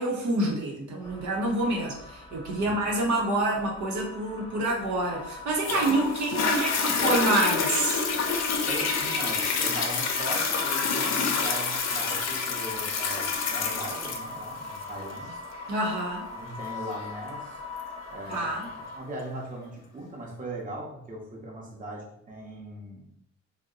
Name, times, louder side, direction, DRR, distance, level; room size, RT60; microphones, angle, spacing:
voice 1, 0.0-8.0 15.7-16.3 18.3-18.7, right 2 dB, 70° right, -1 dB, 0.9 m, -27 dB
sound 1, 1.0-19.0, left 4 dB, 20° left, 0.6 m, -41 dB
voice 2, 2.5-2.8 8.6-15.4 16.3-17.6 18.1-18.6 18.9-23.1, right 1 dB, 25° right, -2 dB, 0.9 m, -39 dB
Toilet flush, 5.6-18.7 19.3-19.4, left 5 dB, 60° left, 0.6 m, -28 dB
2.6 x 2.2 x 3.7 m, 0.73 s
cardioid pair, 90°, 30 cm